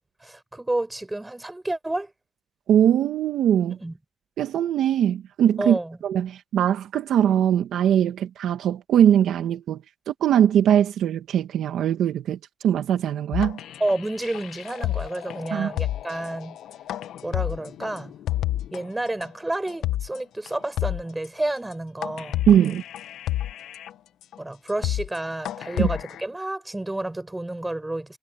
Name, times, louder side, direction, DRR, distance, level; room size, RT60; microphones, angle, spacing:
voice 1, 0.2-2.1 3.8-4.0 5.6-6.0 13.8-16.6 17.2-18.1 18.7-22.7 24.4-28.2, right 1 dB, 10° right, 5.0 m, -30 dB
voice 2, 2.7-3.8 4.4-5.8 6.0-9.8 10.1-12.4 12.6-13.6 15.5-15.7 22.5-22.8 25.8-25.9, right 10 dB, 75° right, 1.7 m, -21 dB
sound 1, 13.3-18.8 19.2-19.3 19.7-20.2 20.5-20.6 20.8-21.3 21.7-21.8 22.0-23.9 24.3-24.4 24.7-25.2 25.5-26.2, left 14 dB, 80° left, 1.3 m, -30 dB
cardioid pair, 90°, 0 cm